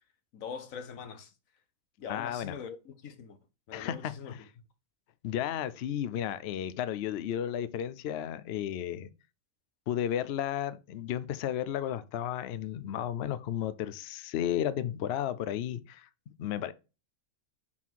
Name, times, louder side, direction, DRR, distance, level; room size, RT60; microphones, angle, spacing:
voice 1, 0.3-1.3 2.0-3.4 3.7-4.5, left 6 dB, 85° left, 1.3 m, -42 dB
voice 2, 2.1-2.6 3.7-4.4 5.2-9.1 9.9-16.1 16.4-16.7, left 10 dB, 60° left, 0.7 m, -33 dB
5.6 x 4.2 x 4.5 m
omnidirectional pair, 1.4 m